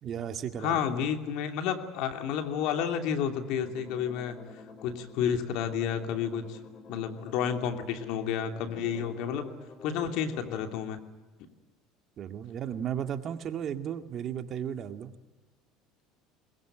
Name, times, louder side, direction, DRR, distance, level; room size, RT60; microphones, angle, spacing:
voice 1, 0.0-0.8 12.2-15.1, right 9 dB, 45° right, 7 dB, 2.0 m, -34 dB
voice 2, 0.6-4.5 4.8-6.6 6.9-9.5 9.8-11.0, left 8 dB, 70° left, 6 dB, 2.9 m, -31 dB
sound 1, 3.6-10.7, left 3 dB, 35° left, 4.9 m, -50 dB
21.5 x 21.5 x 9.0 m, 1.2 s
supercardioid pair, 90°, 0 cm